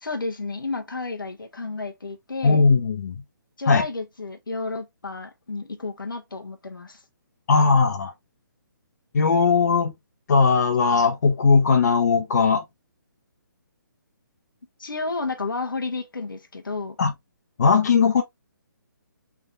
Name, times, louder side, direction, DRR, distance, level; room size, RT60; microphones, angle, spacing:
voice 1, 0.0-2.6 3.6-7.0 14.8-17.0, left 3 dB, 80° left, 0.9 m, -31 dB
voice 2, 2.4-3.2 3.7-3.8 7.5-8.1 9.1-9.9 10.3-12.6 17.0-17.1 17.6-18.2, left 4 dB, 55° left, 0.8 m, -18 dB
3.5 x 3.5 x 2.5 m
figure-of-eight pair, 140°, 11 cm